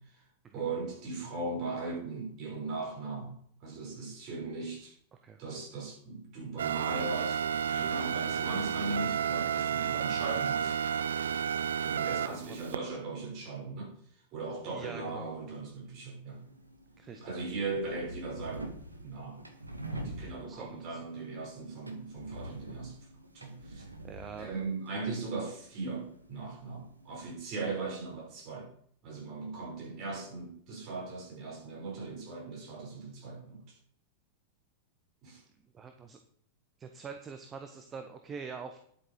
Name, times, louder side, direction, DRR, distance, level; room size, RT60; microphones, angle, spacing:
voice 1, 0.5-5.0 5.4-7.4 7.7-10.8 11.8-13.9 14.3-16.4 17.2-18.7 19.0-19.4 19.9-23.0 23.3-23.9 24.4-28.7 29.0-33.8 35.2-35.4, right 3 dB, 40° right, 5.4 m, -38 dB
sound 1, 6.6-12.8, right 8 dB, 65° right, 0.4 m, -31 dB
voice 2, 12.3-12.6 14.7-15.3 17.0-17.3 20.4-21.0 24.0-24.5 35.7-36.2 36.8-38.8, right 5 dB, 25° right, 1.1 m, -44 dB
sound 2, 16.3-27.4, right 1 dB, 85° right, 1.4 m, -46 dB
11.0 x 8.3 x 4.8 m
figure-of-eight pair, 90°, 0 cm